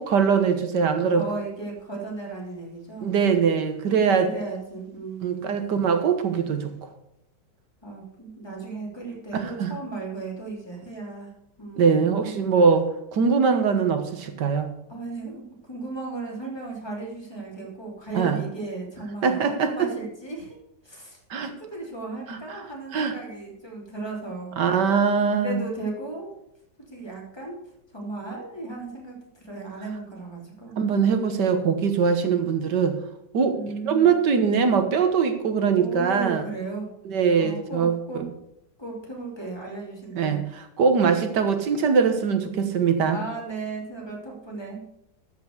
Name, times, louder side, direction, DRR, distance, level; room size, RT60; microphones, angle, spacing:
voice 1, 0.0-1.2 3.0-4.3 5.2-6.7 9.4-9.7 11.8-14.7 18.1-18.4 19.2-19.9 21.3-21.5 22.3-22.4 22.9-23.1 24.6-25.6 30.8-33.0 33.3-33.6 33.8-36.4 37.1-37.9 40.1-43.2, right 6 dB, 70° right, 8 dB, 1.8 m, -22 dB
voice 2, 1.2-3.1 4.3-5.8 7.8-11.3 11.6-12.4 14.9-20.6 20.8-24.5 25.3-26.3 26.9-27.6 27.9-29.1 29.4-30.7 33.5-34.2 35.7-36.9 37.4-38.3 38.8-40.5 43.1-44.9, right 3 dB, 15° left, -2 dB, 3.1 m, -35 dB
13.5 x 6.1 x 6.6 m, 0.78 s
omnidirectional pair, 2.0 m